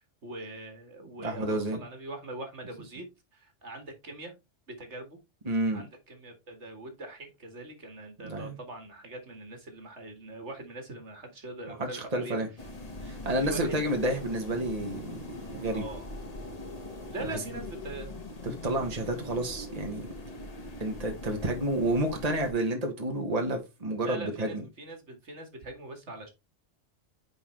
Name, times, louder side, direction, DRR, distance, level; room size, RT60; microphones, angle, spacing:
voice 1, 0.0-4.3 4.7-5.2 5.7-12.4 13.4-13.8 15.7-16.1 17.1-18.1 24.0-26.3, right 2 dB, 65° right, 2.1 m, -42 dB
voice 2, 1.2-1.8 5.4-5.8 8.2-8.5 11.7-12.5 13.0-15.2 15.5-15.8 17.3-17.4 18.4-20.0 20.8-24.6, right 1 dB, 30° right, 1.6 m, -30 dB
sound 1, 12.6-22.5, left 1 dB, 30° left, 1.4 m, -42 dB
9.9 x 4.1 x 3.2 m
omnidirectional pair, 1.3 m